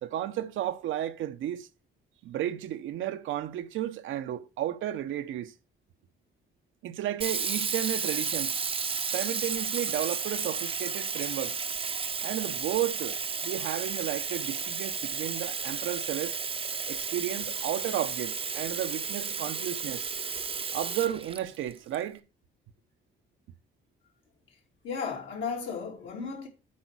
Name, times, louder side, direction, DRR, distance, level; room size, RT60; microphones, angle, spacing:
voice 1, 0.0-1.7 2.2-5.5 6.8-8.6 9.1-11.6 12.2-16.4 16.9-20.1 20.7-22.2, right 12 dB, 80° right, 0.8 m, -33 dB
Sink (filling or washing), 7.2-22.0, right 5 dB, 30° right, 0.6 m, -33 dB
voice 2, 24.8-26.5, left 5 dB, 75° left, 3.1 m, -34 dB
8.5 x 4.5 x 6.0 m
cardioid pair, 90°, 20 cm